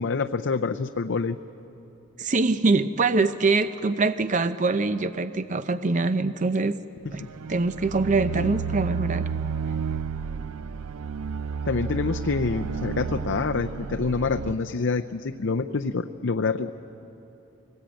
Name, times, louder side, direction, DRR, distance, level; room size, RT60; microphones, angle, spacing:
voice 1, 0.0-1.4 8.4-8.5 11.6-16.7, left 4 dB, 55° left, 6 dB, 0.5 m, -27 dB
voice 2, 2.2-6.7 7.1-7.2 7.5-9.2, right 3 dB, 35° right, 11 dB, 0.5 m, -23 dB
sound 1, 7.1-14.6, right 6 dB, 85° right, 0.5 m, -31 dB
24.0 x 19.0 x 8.9 m, 3.0 s
head